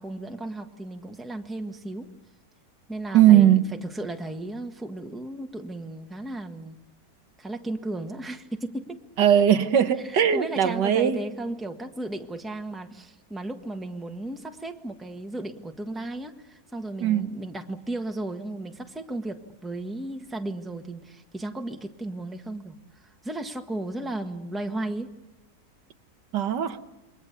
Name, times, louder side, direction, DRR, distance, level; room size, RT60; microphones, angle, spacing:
voice 1, 0.0-2.1 2.9-6.8 7.4-9.0 10.0-25.1, right 2 dB, ahead, 1.3 m, -35 dB
voice 2, 3.1-3.6 9.2-11.2 17.0-17.3 26.3-26.8, right 10 dB, 85° right, 1.7 m, -19 dB
28.5 x 23.0 x 7.0 m
omnidirectional pair, 1.8 m